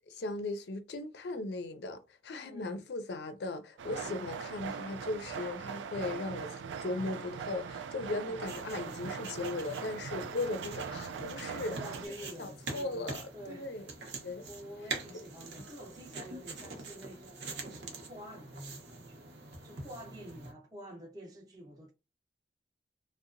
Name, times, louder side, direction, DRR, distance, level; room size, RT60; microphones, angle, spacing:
voice 1, 0.1-11.8 12.4-13.8 14.2-14.5, left 2 dB, 65° left, 0.4 m, -38 dB
voice 2, 2.4-2.8 3.8-4.2 8.1-8.4 11.7-13.7 14.4-19.3 19.6-21.9, equal, 20° right, 0.6 m, -49 dB
sound 1, 3.8-12.1, right 6 dB, 85° right, 0.3 m, -41 dB
sound 2, 8.4-20.5, right 3 dB, 65° right, 0.7 m, -45 dB
2.8 x 2.0 x 2.4 m
head